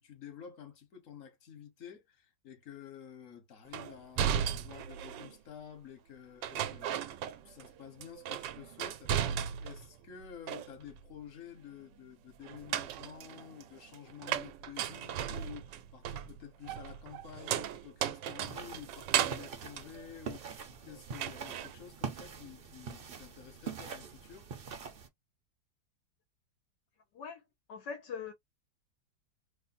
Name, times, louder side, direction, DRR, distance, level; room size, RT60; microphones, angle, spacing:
voice 1, 0.0-7.0 7.4-24.5, left 9 dB, 50° left, 1.5 m, -50 dB
sound 1, 3.7-5.4 6.4-7.7 8.0-9.9 10.2-11.0 12.4-20.7 21.1-21.7, right 9 dB, 85° right, 1.3 m, -36 dB
sound 2, 18.4-25.1, right 6 dB, 50° right, 0.6 m, -44 dB
voice 2, 27.7-28.3, left 6 dB, 75° left, 1.4 m, -41 dB
3.3 x 2.1 x 4.1 m
omnidirectional pair, 1.9 m